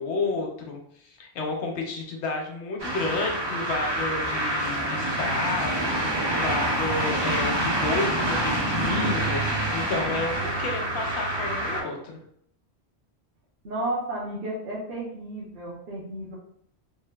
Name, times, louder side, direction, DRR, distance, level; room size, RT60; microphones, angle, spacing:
voice 1, 0.0-12.2, left 3 dB, 85° left, 1 dB, 0.9 m, -31 dB
sound 1, 2.8-11.8, right 1 dB, 40° right, 0.4 m, -27 dB
voice 2, 13.6-16.3, right 1 dB, 55° right, -7 dB, 0.8 m, -32 dB
3.1 x 2.1 x 2.2 m, 0.68 s
omnidirectional pair, 1.1 m